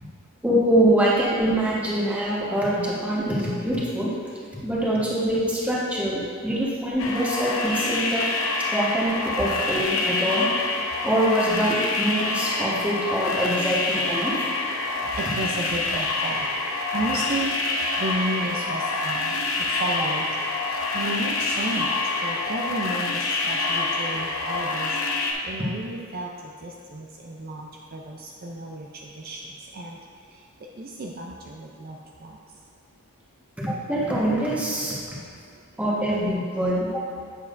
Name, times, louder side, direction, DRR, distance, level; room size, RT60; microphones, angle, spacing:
voice 1, 0.4-4.1 4.6-8.3 8.7-10.5 11.0-14.3 33.6-35.0 35.8-37.0, right 1 dB, 5° right, -7 dB, 1.3 m, -24 dB
sound 1, 7.0-25.3, left 3 dB, 75° left, 0.8 m, -26 dB
voice 2, 14.9-16.5 16.9-22.0 22.2-30.0 30.8-32.4, right 1 dB, 45° right, -1 dB, 0.5 m, -33 dB
8.3 x 7.2 x 2.6 m, 2.4 s
head